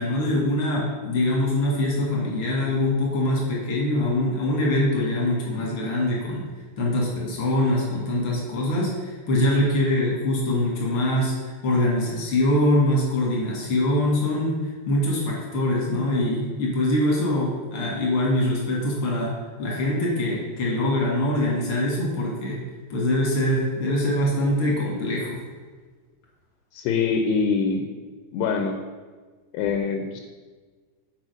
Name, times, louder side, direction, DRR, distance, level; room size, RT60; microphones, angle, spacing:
voice 1, 0.0-6.5 6.8-19.3 19.6-22.6 22.9-25.4, left 1 dB, 60° left, -3 dB, 1.4 m, -23 dB
voice 2, 26.7-27.9 28.3-28.8 29.5-30.2, left 5 dB, 80° left, 5 dB, 2.5 m, -24 dB
7.6 x 4.6 x 6.3 m, 1.4 s
omnidirectional pair, 5.0 m